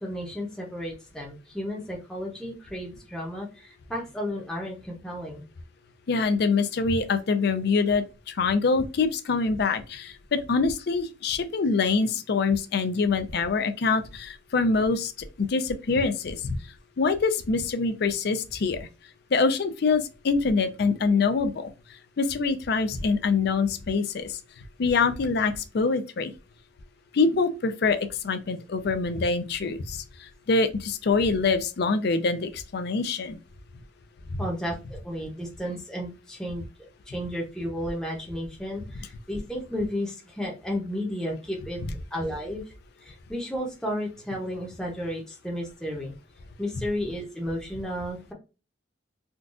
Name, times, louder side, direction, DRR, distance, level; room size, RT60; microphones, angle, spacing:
voice 1, 0.0-5.4 34.4-36.6 37.1-42.7 43.0-46.1 46.6-48.3, equal, 5° left, 0.7 m, -33 dB
voice 2, 6.1-15.1 15.4-16.6 17.0-18.8 19.3-21.7 22.2-24.4 24.8-26.3 27.1-33.4 34.3-34.4, left 4 dB, 60° left, 0.4 m, -25 dB
3.8 x 2.3 x 2.4 m
head